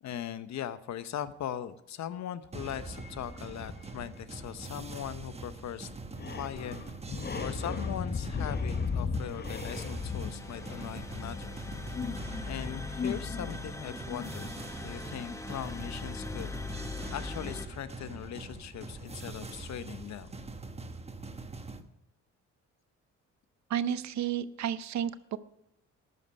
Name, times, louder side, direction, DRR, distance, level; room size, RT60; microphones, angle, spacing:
voice 1, 0.0-5.9 6.3-6.8 7.4-11.6 12.5-14.5 14.8-16.5 17.1-20.4, left 10 dB, 65° left, 13 dB, 0.9 m, -40 dB
sound 1, 2.5-21.8, right 3 dB, 20° right, 1.1 m, -43 dB
sound 2, 3.0-4.2 4.8-4.9 5.1-5.2 5.9-17.4 17.8-17.9, left 5 dB, 35° left, 1.0 m, -37 dB
sound 3, 9.5-17.7, left 3 dB, 10° left, 1.1 m, -41 dB
voice 2, 23.7-25.4, right 9 dB, 65° right, 15 dB, 0.8 m, -32 dB
13.0 x 9.8 x 5.3 m, 0.85 s
cardioid pair, 90°, 30 cm